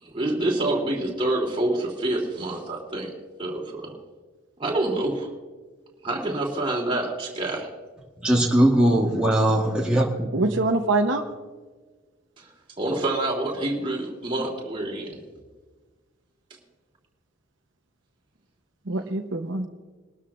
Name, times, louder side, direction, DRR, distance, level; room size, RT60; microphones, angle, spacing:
voice 1, 0.0-3.1 3.4-3.9 4.6-5.3 6.0-7.7 12.4-12.5 12.8-15.2, right 2 dB, 25° right, -1 dB, 3.0 m, -27 dB
voice 2, 8.2-10.3, right 1 dB, 5° right, -4 dB, 1.4 m, -20 dB
voice 3, 10.3-11.2 18.9-19.7, right 2 dB, 70° right, 4 dB, 0.9 m, -24 dB
22.0 x 12.5 x 2.5 m, 1.4 s
head